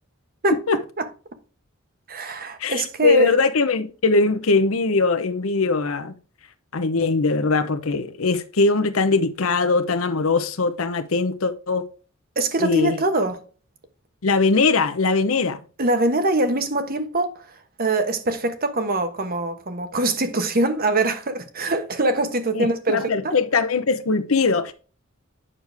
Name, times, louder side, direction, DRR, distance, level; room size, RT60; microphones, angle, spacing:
voice 1, 0.4-1.0 2.1-3.3 12.4-13.4 15.8-23.4, right 2 dB, 45° right, 1.2 m, -23 dB
voice 2, 2.6-6.1 6.7-11.8 12.6-13.0 14.2-15.6 22.5-24.7, left 3 dB, 90° left, 0.8 m, -21 dB
8.8 x 6.6 x 3.4 m
head